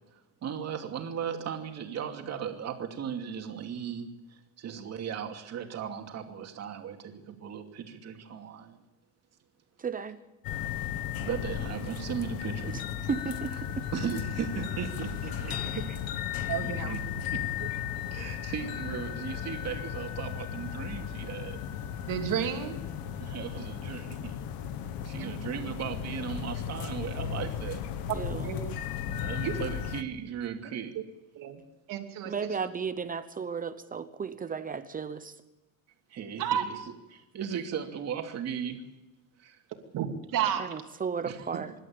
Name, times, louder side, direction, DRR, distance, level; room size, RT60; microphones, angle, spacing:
voice 1, 0.4-8.8 10.5-10.7 11.2-12.8 13.9-15.8 16.4-17.0 17.3-17.4 17.8-17.9 18.1-21.6 23.1-24.4 25.0-27.8 29.2-30.9 36.1-36.7 37.1-38.8 39.4-39.6 41.2-41.6, right 8 dB, 50° right, 3 dB, 2.7 m, -37 dB
voice 2, 9.8-10.2 12.7-12.8 13.1-13.5 15.5-16.0 28.1-28.6 32.2-35.4 40.6-41.7, right 6 dB, 25° right, 11 dB, 0.9 m, -34 dB
sound 1, 10.4-30.0, left 9 dB, 85° left, 1.5 m, -35 dB
voice 3, 16.5-17.2 22.1-22.7 25.2-25.4 28.1-28.6 29.4-29.5 31.3-31.6 31.9-32.3 32.6-32.7 36.4-36.6 39.9-40.6, right 9 dB, 70° right, 4 dB, 2.8 m, -31 dB
25.5 x 12.0 x 8.7 m, 1.0 s
cardioid pair, 155°, 34 cm